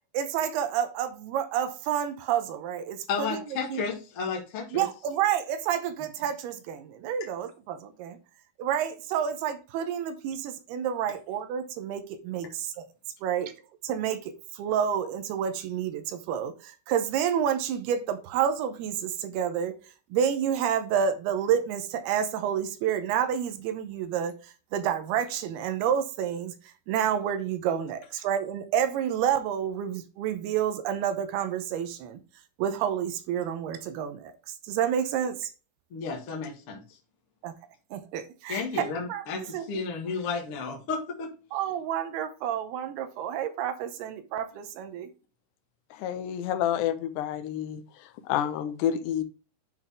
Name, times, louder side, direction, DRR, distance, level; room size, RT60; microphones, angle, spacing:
voice 1, 0.1-3.8 4.7-8.2 8.6-12.9 13.2-13.5 13.8-19.7 20.1-32.2 32.6-35.5 37.4-37.5 37.9-38.8 39.1-39.8 41.5-45.1, right 9 dB, 80° right, 2.6 m, -29 dB
voice 2, 3.1-4.9 35.9-36.8 38.5-41.3, left 5 dB, 55° left, 1.7 m, -32 dB
voice 3, 46.0-47.8 48.3-49.2, left 10 dB, 80° left, 2.9 m, -28 dB
10.5 x 4.0 x 3.5 m
omnidirectional pair, 5.0 m